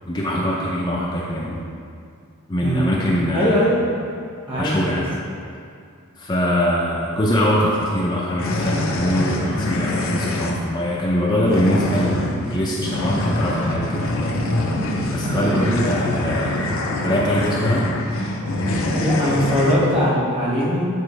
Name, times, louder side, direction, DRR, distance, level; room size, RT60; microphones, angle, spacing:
voice 1, 0.1-1.6 2.5-3.6 4.6-5.1 6.2-14.4 15.1-16.8 17.0-17.9, equal, 20° left, -5 dB, 0.6 m, -22 dB
voice 2, 3.3-3.8 4.5-5.0 15.1-16.0 18.9-20.8, equal, 25° right, -5 dB, 1.4 m, -21 dB
sound 1, 8.4-10.5 11.5-19.7, left 1 dB, 65° left, 0.7 m, -24 dB
sound 2, 13.3-20.1, right 1 dB, 75° right, 0.5 m, -36 dB
8.2 x 4.5 x 3.3 m, 2.3 s
head